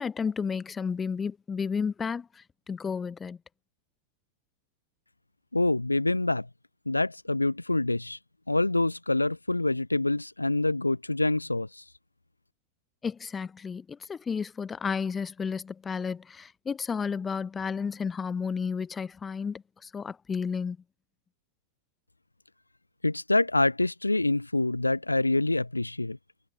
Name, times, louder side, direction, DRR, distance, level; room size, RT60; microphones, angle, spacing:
voice 1, 0.0-3.4 13.0-20.8, left 6 dB, 15° left, 2.5 m, -32 dB
voice 2, 5.5-6.5 6.9-8.2 8.5-11.8 23.0-26.2, left 2 dB, 85° left, 0.4 m, -26 dB
figure-of-eight pair, 90°, 0 cm